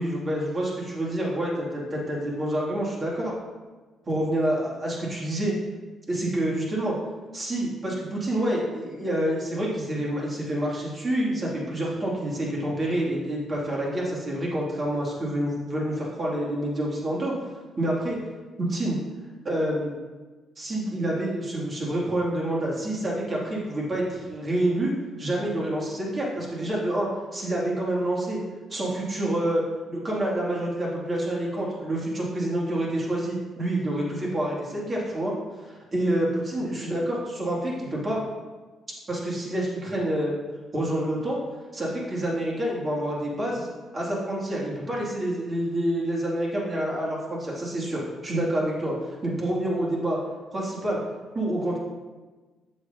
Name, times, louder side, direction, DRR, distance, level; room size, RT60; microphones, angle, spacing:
voice 1, 0.0-3.4 4.1-5.5 6.1-6.9 7.3-17.3 17.8-18.2 18.6-19.0 19.4-19.9 20.6-24.9 25.2-28.4 28.7-29.6 29.9-35.3 35.6-38.2 39.1-40.3 40.7-41.4 41.7-43.7 43.9-50.2 50.5-51.0 51.3-51.8, right 1 dB, 35° right, -4 dB, 2.5 m, -27 dB
7.8 x 7.7 x 2.8 m, 1.3 s
cardioid pair, 90°, 0 cm